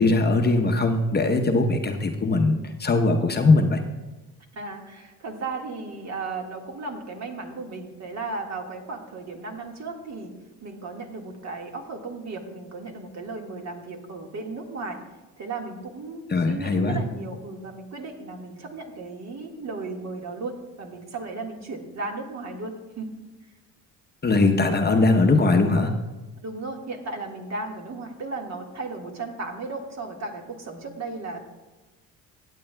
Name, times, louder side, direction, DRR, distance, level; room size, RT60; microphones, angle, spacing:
voice 1, 0.0-3.8 16.3-17.0 24.2-25.9, left 3 dB, 30° left, 4 dB, 0.8 m, -20 dB
voice 2, 4.5-10.4 10.6-15.0 15.4-23.1 26.4-31.4, right 3 dB, 50° right, 2 dB, 1.7 m, -35 dB
16.5 x 8.4 x 2.2 m, 1.1 s
cardioid pair, 90°, 35 cm